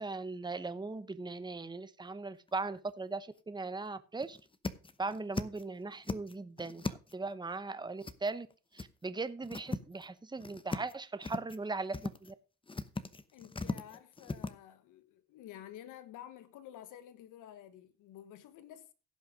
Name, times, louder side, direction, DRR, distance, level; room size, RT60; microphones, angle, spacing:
voice 1, 0.0-4.4 5.0-8.5 8.7-12.3, right 3 dB, 15° right, 0.9 m, -39 dB
sound 1, 2.5-2.9 3.3-3.4 3.8-3.9 4.2-5.6 5.9-7.3 8.0-8.5 8.8-8.9 9.3-10.1 10.4-10.9 11.2-11.6 11.9-12.3 12.7-14.5, left 3 dB, 15° left, 0.9 m, -39 dB
voice 2, 13.3-18.9, left 11 dB, 90° left, 1.3 m, -51 dB
16.0 x 5.7 x 5.1 m
cardioid pair, 90°, 30 cm